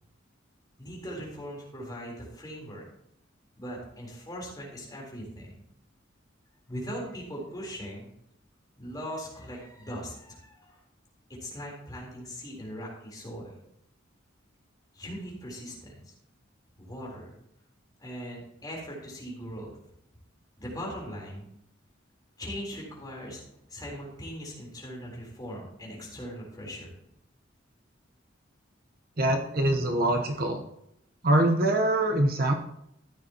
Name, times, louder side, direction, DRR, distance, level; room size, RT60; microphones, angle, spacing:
voice 1, 0.8-2.8 3.6-5.6 6.7-8.1 8.8-10.8 11.3-13.6 14.9-16.1 16.8-17.3 18.0-19.8 20.6-21.5 22.4-23.4 23.7-26.9, equal, 20° left, -3 dB, 3.8 m, -40 dB
voice 2, 29.2-30.6 31.2-32.5, right 1 dB, 50° right, 3 dB, 1.0 m, -24 dB
14.0 x 9.7 x 3.0 m, 0.77 s
head